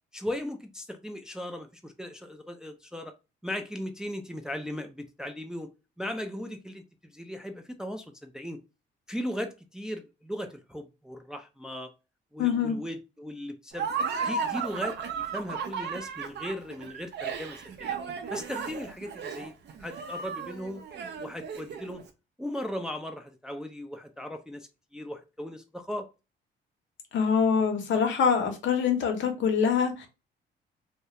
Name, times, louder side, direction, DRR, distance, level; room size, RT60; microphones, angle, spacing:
voice 1, 0.1-3.1 3.4-5.7 6.0-8.6 9.1-11.9 12.3-13.9 14.2-18.0 18.3-19.5 19.8-20.8 21.2-22.0 22.4-26.1, left 1 dB, 5° right, 0.3 m, -37 dB
voice 2, 12.4-12.8 27.1-30.1, left 6 dB, 70° left, 0.7 m, -24 dB
Laughter, 13.7-22.0, right 6 dB, 60° right, 0.5 m, -34 dB
2.3 x 2.1 x 2.8 m
cardioid pair, 90°, 20 cm